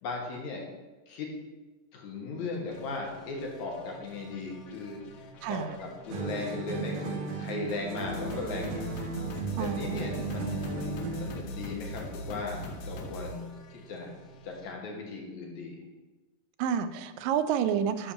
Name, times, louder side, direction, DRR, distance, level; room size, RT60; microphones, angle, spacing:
voice 1, 0.0-0.7 1.1-1.3 1.9-5.0 5.5-8.9 9.6-14.1 14.4-15.8, left 3 dB, 65° left, 0 dB, 2.5 m, -37 dB
sound 1, 2.7-14.7, equal, 90° left, 1.3 m, -43 dB
voice 2, 5.4-5.7 9.6-10.3 16.6-18.1, right 8 dB, 85° right, 12 dB, 2.2 m, -30 dB
sound 2, 6.1-11.4, right 4 dB, 65° right, 2.4 m, -35 dB
10.0 x 3.5 x 6.9 m, 1.2 s
omnidirectional pair, 3.8 m